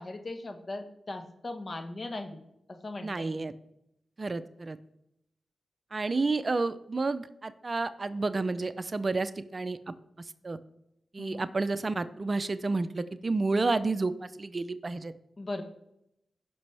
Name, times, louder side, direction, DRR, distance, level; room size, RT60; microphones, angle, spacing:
voice 1, 0.0-2.4 2.7-3.4 11.2-11.5 15.4-15.6, left 2 dB, 45° left, 7 dB, 1.3 m, -38 dB
voice 2, 3.0-3.5 4.2-4.8 5.9-9.8 10.4-10.6 11.1-14.1 14.4-15.1, right 3 dB, 45° right, 14 dB, 0.6 m, -30 dB
15.5 x 6.1 x 3.4 m, 0.80 s
cardioid pair, 45°, 0 cm